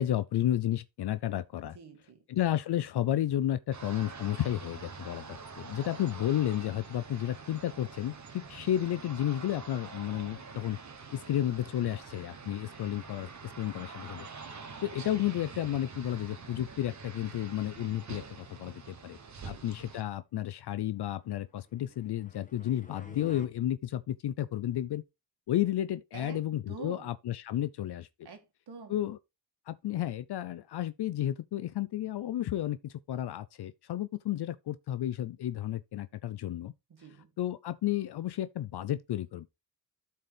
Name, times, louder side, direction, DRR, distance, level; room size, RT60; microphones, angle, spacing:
voice 1, 0.0-1.8 2.3-5.2 5.6-10.8 11.1-14.3 14.8-19.2 19.4-25.0 25.5-28.1 28.9-29.2 29.7-36.7 37.4-39.5, left 12 dB, 70° left, 0.6 m, -32 dB
voice 2, 1.6-2.2 5.8-6.0 11.2-11.3 11.8-12.0 12.7-12.9 14.4-14.8 19.4-19.7 26.1-27.1 28.2-29.0 29.8-30.0 36.9-37.3, right 5 dB, 65° right, 1.9 m, -48 dB
sound 1, 3.7-20.0, right 5 dB, 40° right, 1.1 m, -46 dB
sound 2, 21.5-23.5, left 3 dB, 20° left, 1.5 m, -50 dB
12.5 x 4.3 x 3.3 m
cardioid pair, 90°, 42 cm